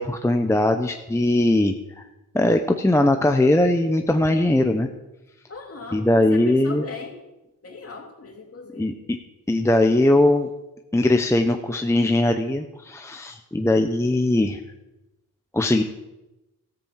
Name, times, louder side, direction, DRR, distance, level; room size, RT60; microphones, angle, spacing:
voice 1, 0.0-2.0 2.3-4.9 5.9-6.8 8.8-8.9 9.5-10.5 10.9-14.6 15.5-15.8, left 1 dB, 10° left, 5 dB, 0.7 m, -20 dB
voice 2, 5.5-7.2 7.6-8.9, left 4 dB, 40° left, 1 dB, 2.7 m, -39 dB
14.0 x 7.4 x 7.3 m, 0.99 s
wide cardioid pair, 100°, 34 cm